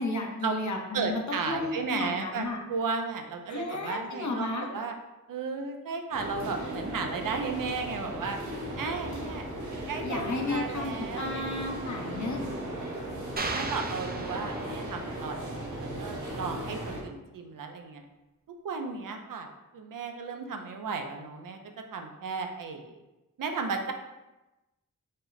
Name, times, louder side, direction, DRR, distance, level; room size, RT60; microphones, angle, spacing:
voice 1, 0.0-2.6 3.5-4.7 10.0-12.4, left 2 dB, 60° left, 1 dB, 0.8 m, -33 dB
voice 2, 0.9-4.9 5.3-8.4 8.8-9.5 9.9-11.6 11.8-11.9 13.5-18.0 18.6-19.5 19.7-21.6 21.9-22.9 23.4-23.9, right 4 dB, 85° right, 5 dB, 0.6 m, -34 dB
sound 1, 6.1-17.0, right 1 dB, 70° right, 1.3 m, -37 dB
sound 2, 13.4-15.1, right 3 dB, 30° right, 0.4 m, -35 dB
5.3 x 2.1 x 3.9 m, 1.0 s
wide cardioid pair, 75°, 32 cm